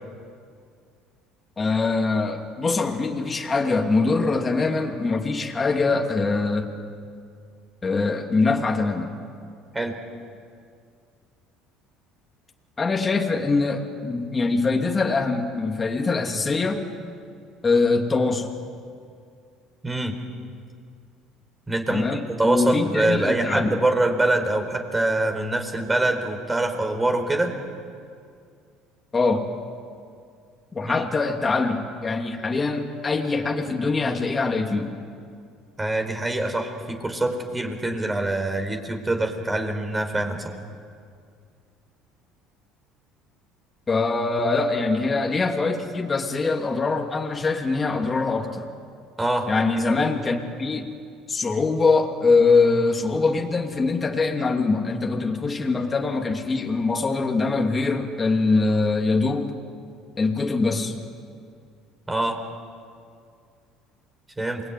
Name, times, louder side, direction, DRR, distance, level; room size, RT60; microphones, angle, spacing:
voice 1, 1.6-6.7 7.8-9.1 12.8-16.9 17.6-18.5 21.9-23.8 29.1-29.5 30.7-34.9 43.9-48.7 49.5-50.9 51.3-59.5 60.2-60.9, left 3 dB, 25° left, 2 dB, 2.8 m, -23 dB
voice 2, 19.8-20.2 21.7-27.5 30.8-31.1 35.8-40.6 49.2-49.5 62.1-62.4 64.4-64.6, right 2 dB, 15° right, 4 dB, 4.3 m, -24 dB
28.0 x 21.5 x 9.5 m, 2.3 s
supercardioid pair, 85°, 0 cm